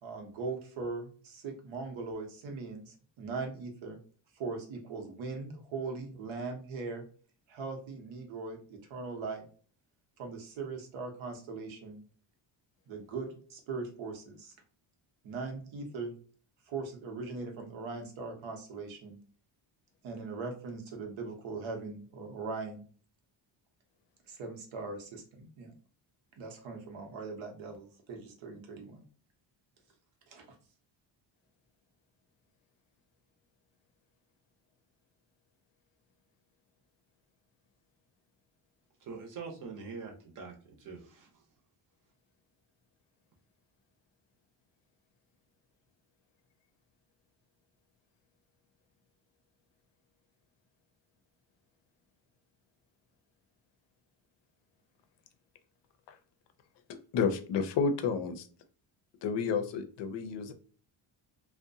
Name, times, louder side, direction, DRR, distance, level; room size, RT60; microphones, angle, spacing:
voice 1, 0.0-4.0 4.4-7.0 7.5-9.4 10.2-12.0 12.9-14.5 15.2-16.1 16.7-19.2 20.0-22.8 24.3-25.7 26.4-29.0 30.3-30.5, right 4 dB, 80° right, 3 dB, 0.9 m, -40 dB
voice 2, 39.0-41.3, right 5 dB, 45° right, 1 dB, 0.7 m, -44 dB
voice 3, 57.1-58.5 59.2-60.5, left 5 dB, 65° left, 8 dB, 0.5 m, -30 dB
2.6 x 2.1 x 2.6 m, 0.42 s
cardioid pair, 175°, 46 cm